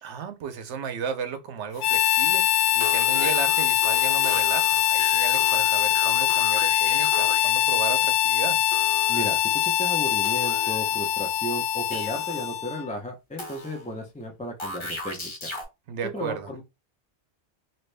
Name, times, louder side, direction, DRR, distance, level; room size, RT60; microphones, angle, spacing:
voice 1, 0.0-8.6 15.9-16.5, right 7 dB, 80° right, 1.0 m, -34 dB
Harmonica, 1.8-12.9, left 12 dB, 75° left, 0.8 m, -23 dB
sound 1, 2.6-7.7 8.7-9.6 10.2-11.1 11.9-12.5 13.4-14.0 14.6-15.6, left 2 dB, 30° left, 0.9 m, -37 dB
voice 2, 9.1-15.5 16.0-16.6, equal, 10° left, 0.4 m, -34 dB
2.9 x 2.6 x 3.2 m
omnidirectional pair, 1.1 m